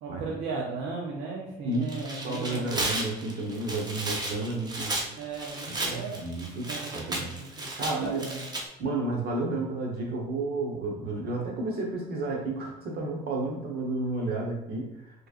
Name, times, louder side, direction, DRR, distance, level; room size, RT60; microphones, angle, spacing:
voice 1, 0.0-2.8 5.1-6.2 6.7-8.5, right 4 dB, 90° right, -2 dB, 0.7 m, -36 dB
voice 2, 1.6-4.9 5.7-8.3 8.8-15.3, right 2 dB, 65° right, 0 dB, 1.1 m, -32 dB
Tearing, 1.7-8.6, right 2 dB, 25° right, 0.8 m, -34 dB
4.6 x 3.2 x 2.5 m, 0.84 s
cardioid pair, 110°, 17 cm